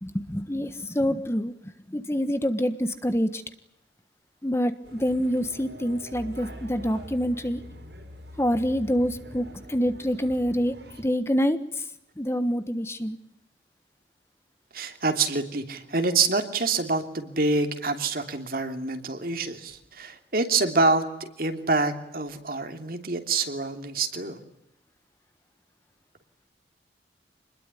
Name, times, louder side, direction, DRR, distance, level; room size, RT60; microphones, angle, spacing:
voice 1, 0.0-3.4 4.4-7.6 8.4-11.9 12.2-13.2, equal, 15° left, 10 dB, 1.4 m, -26 dB
sound 1, 4.8-11.0, right 1 dB, 80° right, 7.7 m, -44 dB
voice 2, 14.7-24.4, right 3 dB, 55° right, 7 dB, 3.0 m, -26 dB
27.0 x 21.0 x 10.0 m, 0.83 s
head